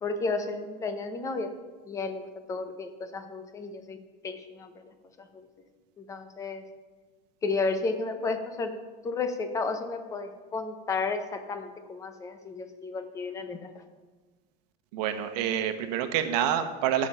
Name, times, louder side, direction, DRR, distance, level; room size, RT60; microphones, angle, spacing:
voice 1, 0.0-1.5 1.9-4.0 4.2-4.7 5.2-5.4 6.0-6.6 7.4-8.7 9.0-13.7, left 3 dB, 15° left, 7 dB, 0.7 m, -32 dB
voice 2, 14.9-17.1, right 10 dB, 75° right, 8 dB, 1.1 m, -27 dB
13.5 x 6.4 x 5.5 m, 1.3 s
cardioid pair, 180°, 21 cm